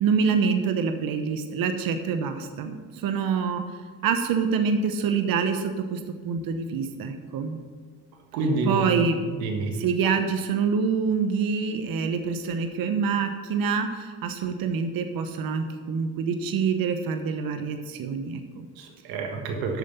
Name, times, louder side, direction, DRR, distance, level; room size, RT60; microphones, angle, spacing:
voice 1, 0.0-3.7 4.0-7.6 8.6-9.3 9.7-18.7, right 5 dB, 65° right, 7 dB, 1.1 m, -26 dB
voice 2, 8.3-9.1 9.4-9.8 18.8-19.8, right 3 dB, 80° right, 4 dB, 1.5 m, -28 dB
10.0 x 6.7 x 7.0 m, 1.5 s
hypercardioid pair, 65°, 37 cm